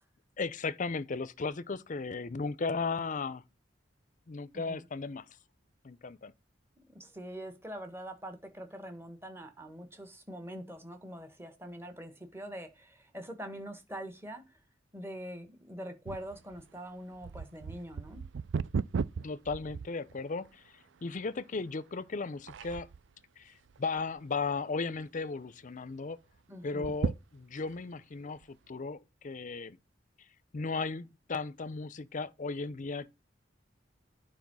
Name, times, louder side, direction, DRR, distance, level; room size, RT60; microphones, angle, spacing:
voice 1, 0.4-3.4 4.3-5.2 5.8-6.3 19.2-20.6 21.0-22.9 23.4-23.5 23.8-26.2 26.6-29.8 30.5-33.1, left 4 dB, 45° left, 0.6 m, -36 dB
voice 2, 4.5-4.9 6.8-14.6 14.9-18.2 26.5-26.9, equal, 15° right, 1.5 m, -44 dB
sound 1, 16.1-20.5 21.1-21.2 21.9-22.2 22.5-23.1 23.7-24.4 24.7-24.8 25.1-25.2 26.7-27.8 28.4-28.5, right 5 dB, 75° right, 0.4 m, -36 dB
9.5 x 4.6 x 6.2 m
head